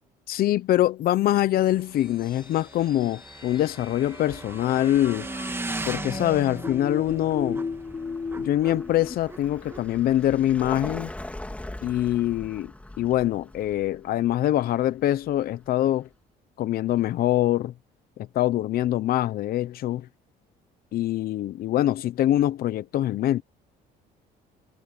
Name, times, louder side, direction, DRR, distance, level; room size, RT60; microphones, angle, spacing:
voice 1, 0.3-5.3 5.9-7.6 8.4-11.1 11.8-12.7 13.0-16.1 16.6-17.7 18.3-20.1 20.9-23.4, left 13 dB, 60° left, 0.8 m, -24 dB
sound 1, 1.0-9.1, left 5 dB, 30° left, 6.8 m, -37 dB
Motorcycle / Engine, 1.7-10.9, right 2 dB, 15° right, 2.1 m, -38 dB
Vehicle, 7.2-16.0, left 1 dB, 10° left, 3.6 m, -42 dB
cardioid pair, 110°, 17 cm